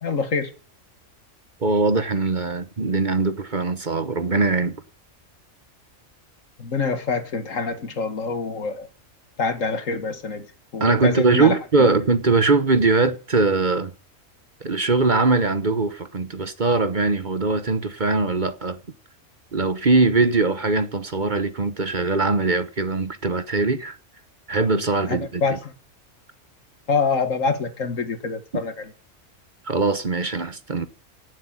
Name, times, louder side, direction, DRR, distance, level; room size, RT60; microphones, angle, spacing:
voice 1, 0.0-0.5 6.6-8.9 9.4-10.5 10.7-12.0 25.1-25.7 26.9-28.9, left 4 dB, 75° left, 2.2 m, -26 dB
voice 2, 1.6-4.8 10.8-13.9 14.6-18.8 19.5-24.0 24.5-25.6 29.6-30.9, right 3 dB, 40° right, 1.2 m, -21 dB
17.0 x 7.7 x 9.0 m
omnidirectional pair, 1.4 m